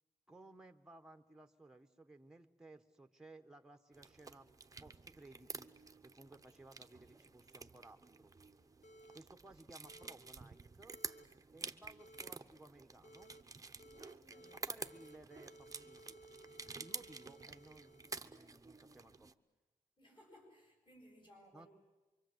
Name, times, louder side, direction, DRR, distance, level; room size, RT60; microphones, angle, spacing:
voice 1, 0.3-4.5 4.8-5.7 6.0-8.3 9.1-11.0 11.5-13.3 14.7-16.2 16.8-19.3 21.5-21.7, right 2 dB, 5° right, 5 dB, 1.0 m, -59 dB
sound 1, 3.9-19.3, right 4 dB, 25° right, 0.8 m, -50 dB
sound 2, 8.8-9.2 9.8-10.1 10.9-11.2 12.0-12.3 13.0-13.4 13.8-14.6 14.8-18.6, right 1 dB, 55° left, 0.9 m, -59 dB
voice 2, 14.0-14.7 20.0-21.7, equal, 30° left, 1 dB, 7.6 m, -62 dB
25.5 x 24.5 x 7.9 m, 1.1 s
wide cardioid pair, 150°, 15 cm